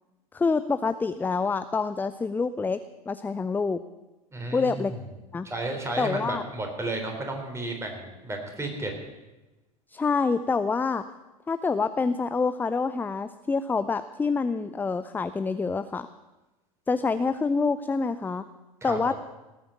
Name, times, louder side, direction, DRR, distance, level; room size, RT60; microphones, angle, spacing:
voice 1, 0.3-2.8 3.1-3.8 4.5-4.9 5.3-5.5 6.0-6.4 9.9-11.0 11.5-16.1 16.9-18.4 18.8-19.1, left 4 dB, 10° left, 12 dB, 0.5 m, -26 dB
voice 2, 4.3-5.0 5.4-8.9 18.8-19.1, right 2 dB, 15° right, 3 dB, 4.0 m, -33 dB
18.5 x 8.7 x 7.2 m, 1.1 s
figure-of-eight pair, 80°, 19 cm